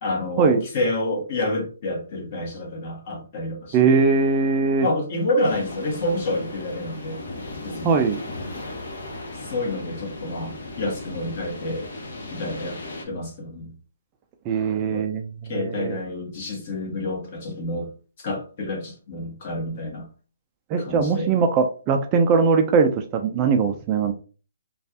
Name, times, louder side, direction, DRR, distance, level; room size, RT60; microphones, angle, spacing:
voice 1, 0.0-4.0 4.8-7.2 7.6-8.0 9.3-11.9 12.3-12.8 13.1-13.7 14.9-15.1 15.5-17.9 18.2-20.1 20.8-21.3, left 1 dB, 40° left, 1.3 m, -28 dB
voice 2, 3.7-4.9 7.8-8.2 14.5-15.3 15.5-16.0 20.7-24.1, right 5 dB, 25° right, 0.4 m, -20 dB
sound 1, 5.4-13.0, left 2 dB, 60° left, 1.0 m, -36 dB
3.1 x 2.3 x 2.8 m
hypercardioid pair, 150°, 0 cm